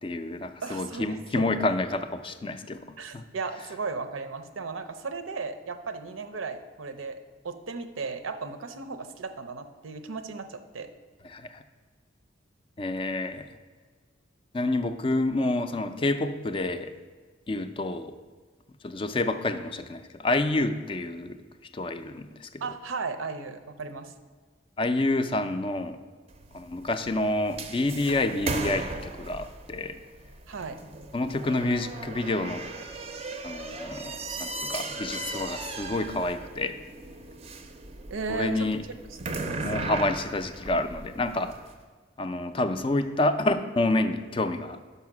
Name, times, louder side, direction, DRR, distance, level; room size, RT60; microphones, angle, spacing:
voice 1, 0.0-2.8 3.1-3.2 11.3-11.6 12.8-13.5 14.5-16.9 17.5-18.1 18.8-21.4 21.7-22.5 24.8-26.0 26.5-30.0 31.1-32.7 33.4-36.8 38.3-38.8 39.6-41.5 42.2-44.8, left 2 dB, 25° left, 9 dB, 0.3 m, -28 dB
voice 2, 0.6-1.5 3.0-7.2 7.4-10.9 22.6-24.1 30.5-30.8 38.1-38.8 39.1-39.7, right 4 dB, 85° right, 9 dB, 0.6 m, -36 dB
sound 1, 26.3-41.7, right 3 dB, 30° right, 0.5 m, -37 dB
5.7 x 5.6 x 6.0 m, 1.5 s
head